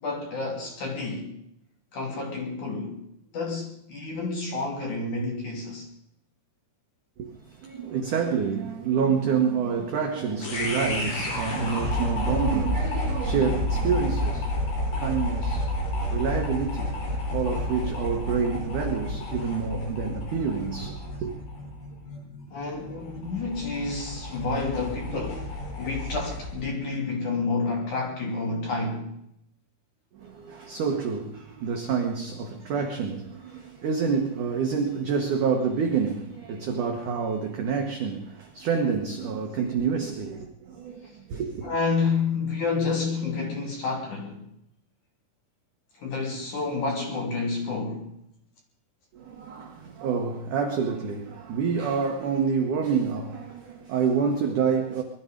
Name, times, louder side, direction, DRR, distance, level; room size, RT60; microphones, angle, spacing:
voice 1, 0.0-1.3 1.9-3.0 3.3-5.9 22.5-29.1 41.6-44.4 46.0-48.1, left 4 dB, 45° left, 3.7 m, -29 dB
voice 2, 7.2-14.6 15.0-15.7 16.1-21.3 30.2-41.7 49.1-55.0, right 6 dB, 75° right, 1.9 m, -28 dB
sound 1, 10.4-26.6, left 1 dB, 60° left, 6.4 m, -30 dB
21.5 x 13.0 x 5.2 m
omnidirectional pair, 5.5 m